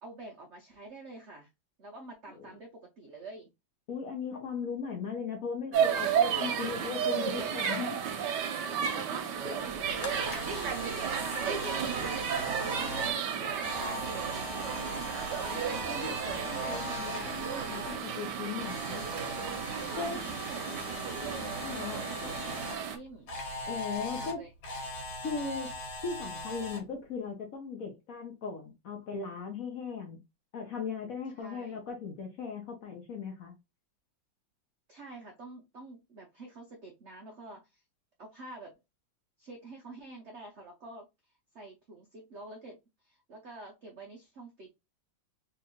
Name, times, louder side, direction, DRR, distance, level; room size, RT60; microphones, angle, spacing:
voice 1, 0.0-1.5 1.8-3.5 8.8-15.1 19.7-23.3 24.0-24.5 31.4-31.8 34.9-37.8 38.2-38.7 39.4-44.7, right 2 dB, 90° right, 0.6 m, -48 dB
voice 2, 3.9-8.0 9.4-9.6 15.5-19.0 20.0-20.2 21.6-22.0 23.7-24.4 25.2-25.7 26.0-30.2 30.5-33.5, left 5 dB, 60° left, 0.9 m, -38 dB
sound 1, 5.7-23.0, right 7 dB, 70° right, 1.2 m, -33 dB
Camera, 9.6-18.0 18.3-22.8 23.3-26.8, left 2 dB, 90° left, 1.8 m, -40 dB
3.5 x 3.0 x 2.9 m
omnidirectional pair, 2.2 m